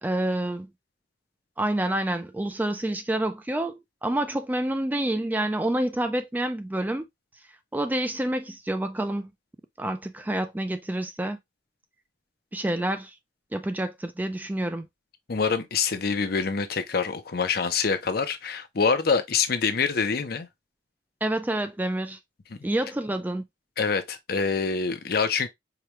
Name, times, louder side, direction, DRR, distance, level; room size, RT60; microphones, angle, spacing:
voice 1, 0.0-0.7 1.6-7.1 7.7-9.3 9.8-11.4 12.5-13.1 13.5-14.9 21.2-22.2 22.6-23.4, right 1 dB, 10° right, 0.3 m, -28 dB
voice 2, 15.3-20.5 23.8-25.5, left 5 dB, 55° left, 0.6 m, -25 dB
4.8 x 2.3 x 2.9 m
head